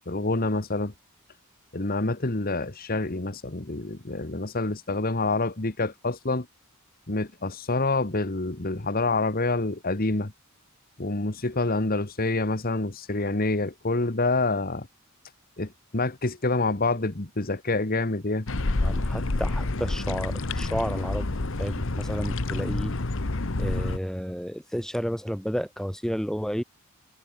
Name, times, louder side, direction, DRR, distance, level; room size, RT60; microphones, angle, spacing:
voice 1, 0.1-0.9 1.7-6.5 7.1-10.3 11.0-14.9 15.6-18.5, left 2 dB, 40° left, 1.4 m, -27 dB
sound 1, 18.5-24.0, left 2 dB, 60° left, 1.2 m, -28 dB
voice 2, 18.8-21.3 21.6-22.9 23.6-26.6, equal, ahead, 3.9 m, -31 dB
head